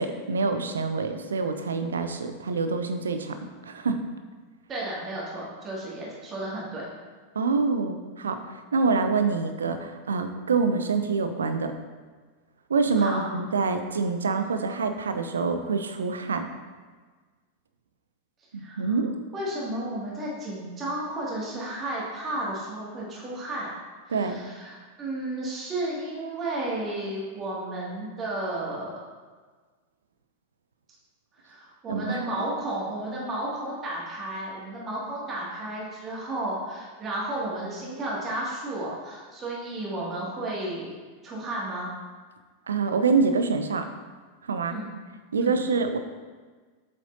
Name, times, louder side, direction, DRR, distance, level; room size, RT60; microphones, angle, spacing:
voice 1, 0.0-3.3 3.6-4.0 7.4-11.7 12.7-16.5 18.5-19.1 24.1-24.4 31.9-32.2 42.7-43.9 44.5-44.8 45.3-46.0, right 4 dB, 70° right, 8 dB, 0.6 m, -26 dB
voice 2, 4.7-6.9 13.0-13.2 18.6-19.0 19.3-23.7 24.1-29.0 31.4-40.9 41.2-41.9 44.7-44.9 45.4-45.5, right 1 dB, 25° right, -5 dB, 2.2 m, -33 dB
7.6 x 7.4 x 2.7 m, 1.4 s
figure-of-eight pair, 90°, 0 cm